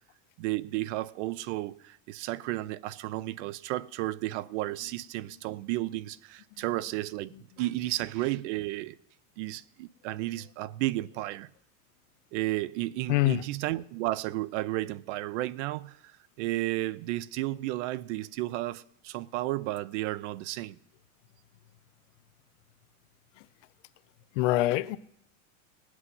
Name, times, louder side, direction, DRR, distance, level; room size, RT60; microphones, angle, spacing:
voice 1, 0.4-9.0 9.4-11.5 12.3-20.8, right 17 dB, 60° right, 0.7 m, -33 dB
voice 2, 13.1-13.4 23.4-23.5 24.3-25.0, left 17 dB, 65° left, 0.7 m, -25 dB
18.0 x 6.3 x 9.5 m
supercardioid pair, 145°, 40 cm